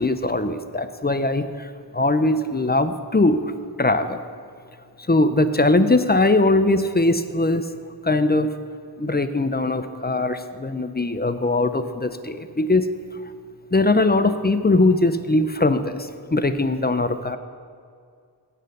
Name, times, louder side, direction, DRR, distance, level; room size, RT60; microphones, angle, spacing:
voice 1, 0.0-3.5 3.8-4.2 5.0-7.7 8.0-8.5 9.0-12.9 13.7-17.4, left 2 dB, 25° left, 10 dB, 0.5 m, -21 dB
7.6 x 6.5 x 7.8 m, 2.2 s
wide cardioid pair, 40°, 44 cm